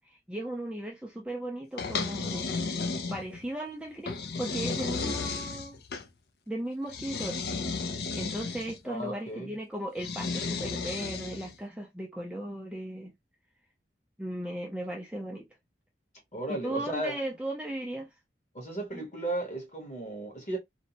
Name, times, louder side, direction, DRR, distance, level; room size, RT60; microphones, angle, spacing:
voice 1, 0.0-2.5 3.1-5.8 6.5-7.4 8.2-13.1 14.2-15.5 16.5-18.1 18.9-19.0, right 1 dB, 5° right, 0.4 m, -36 dB
sound 1, 1.8-3.5 4.1-6.1 6.9-8.8 10.0-11.6, left 4 dB, 60° left, 0.4 m, -33 dB
voice 2, 8.8-9.6 16.3-17.2 18.5-20.6, right 1 dB, 40° left, 1.1 m, -35 dB
2.6 x 2.1 x 2.7 m
head